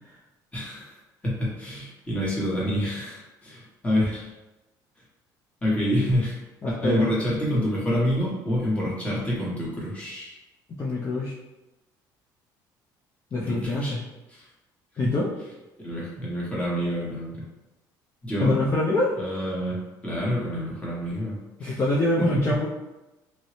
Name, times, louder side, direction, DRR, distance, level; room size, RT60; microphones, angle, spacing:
voice 1, 0.5-0.9 1.2-4.3 5.6-6.4 6.7-10.3 13.4-14.0 14.3-14.4 15.0-15.1 15.8-17.3 18.2-18.6 19.2-21.8 22.2-22.3, equal, 15° left, -6 dB, 1.3 m, -27 dB
voice 2, 6.6-7.1 10.8-11.3 13.3-14.0 15.0-15.3 18.4-19.1 21.6-22.7, left 2 dB, 35° left, -6 dB, 0.6 m, -25 dB
3.0 x 2.6 x 3.2 m, 1.0 s
cardioid pair, 120°, 8 cm